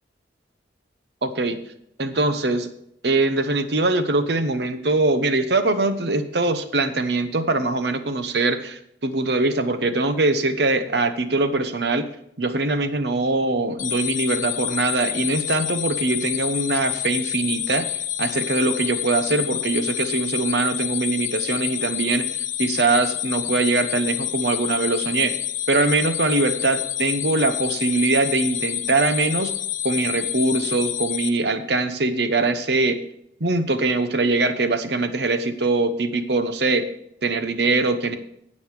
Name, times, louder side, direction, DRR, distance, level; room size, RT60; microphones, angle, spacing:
voice 1, 1.2-1.6 2.0-2.7 3.0-12.1 12.4-17.9 18.2-22.3 22.6-25.4 25.7-29.5 29.8-33.0 33.4-36.9 37.2-38.1, right 2 dB, 65° right, 10 dB, 0.9 m, -22 dB
sound 1, 13.8-31.3, left 12 dB, 45° left, 0.6 m, -28 dB
16.0 x 5.4 x 4.8 m, 0.73 s
head